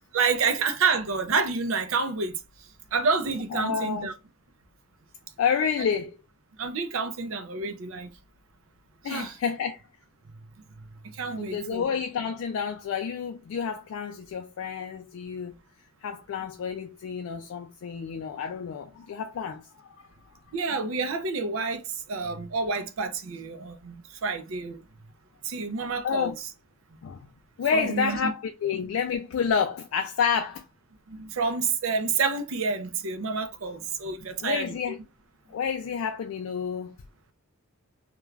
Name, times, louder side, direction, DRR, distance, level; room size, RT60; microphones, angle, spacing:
voice 1, 0.1-2.4 2.9-4.1 6.6-8.1 9.0-9.4 11.1-11.9 20.5-24.8 25.4-26.3 27.7-28.3 31.1-34.7, right 4 dB, 70° right, 0.5 m, -28 dB
voice 2, 3.5-4.1 5.4-6.2 9.0-9.8 11.4-15.5 16.0-20.1 26.0-26.3 27.0-27.2 27.6-30.6 34.4-35.0 35.5-36.9, left 6 dB, 70° left, 0.3 m, -29 dB
2.3 x 2.2 x 3.1 m
head